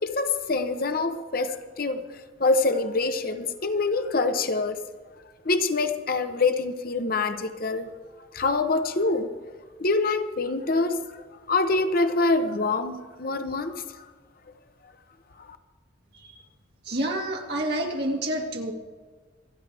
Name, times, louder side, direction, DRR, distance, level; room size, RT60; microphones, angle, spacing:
voice 1, 0.0-2.0 2.4-4.8 5.4-7.9 8.3-9.3 9.8-11.0 11.5-13.8, left 3 dB, 50° left, 0.8 m, -25 dB
voice 2, 16.9-18.7, right 1 dB, 55° right, 2.3 m, -28 dB
27.5 x 10.5 x 3.4 m
head